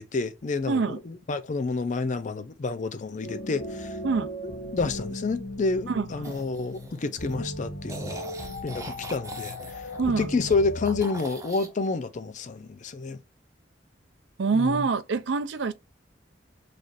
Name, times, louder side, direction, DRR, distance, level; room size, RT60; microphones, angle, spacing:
voice 1, 0.0-4.0 4.4-8.2 8.6-9.9 10.2-13.2 14.5-14.9, left 3 dB, 40° left, 0.4 m, -29 dB
voice 2, 0.7-1.0 4.0-4.3 5.9-6.3 10.0-10.3 14.4-15.7, right 4 dB, 75° right, 0.4 m, -26 dB
sound 1, 3.2-11.0, left 1 dB, 90° left, 1.0 m, -37 dB
sound 2, 6.2-7.3 7.9-10.5 10.8-11.7, right 2 dB, 15° right, 0.6 m, -41 dB
3.3 x 2.4 x 4.0 m
head